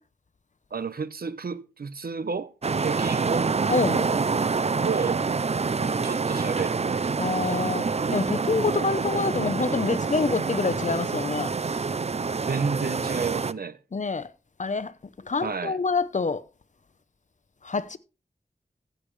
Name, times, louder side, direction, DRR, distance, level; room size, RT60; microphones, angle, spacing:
voice 1, 0.7-2.5 2.8-3.5 4.8-5.2 5.8-7.3 12.5-13.8 15.4-15.8, right 5 dB, 70° right, 0.8 m, -31 dB
sound 1, 2.6-13.5, right 4 dB, 40° right, 0.5 m, -27 dB
voice 2, 3.7-4.1 7.2-11.5 13.9-14.3 14.6-14.9 15.3-16.4 17.6-18.0, left 4 dB, 50° left, 0.8 m, -26 dB
15.0 x 8.0 x 3.2 m
wide cardioid pair, 65°, 16 cm